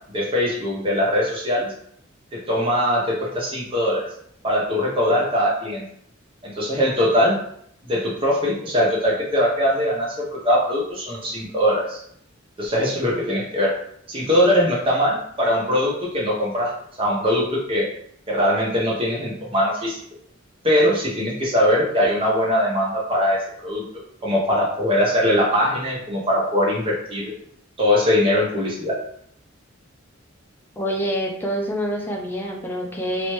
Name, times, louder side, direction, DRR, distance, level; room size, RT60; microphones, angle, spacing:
voice 1, 0.1-1.7 2.3-4.1 4.4-5.8 6.4-7.4 7.8-12.0 12.6-13.7 14.1-16.7 17.0-17.9 18.3-20.0 20.6-23.8 24.2-27.3 27.8-29.0, equal, 25° right, -3 dB, 0.9 m, -21 dB
voice 2, 30.8-33.3, equal, 10° left, 0 dB, 0.5 m, -26 dB
3.0 x 3.0 x 3.1 m, 0.68 s
head